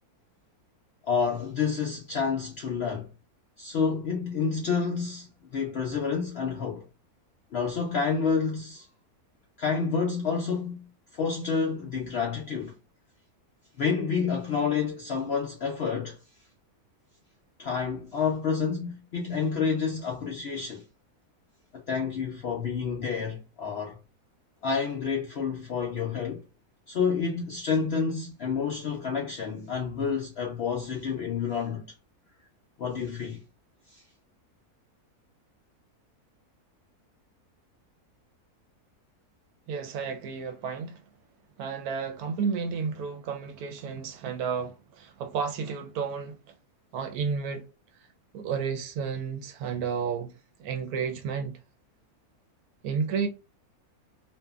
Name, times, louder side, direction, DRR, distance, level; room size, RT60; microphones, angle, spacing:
voice 1, 1.1-3.1 3.6-6.9 7.5-8.9 9.6-10.9 11.1-12.7 13.8-16.2 17.6-20.8 21.7-24.0 24.6-26.4 26.9-31.8 32.8-33.4 33.9-34.0, left 5 dB, 70° left, 0.6 m, -29 dB
voice 2, 39.7-41.0 41.6-46.4 46.9-47.6 48.3-50.3 50.6-51.6 52.8-53.3, right 6 dB, 75° right, 1.1 m, -31 dB
2.6 x 2.4 x 2.3 m
omnidirectional pair, 1.6 m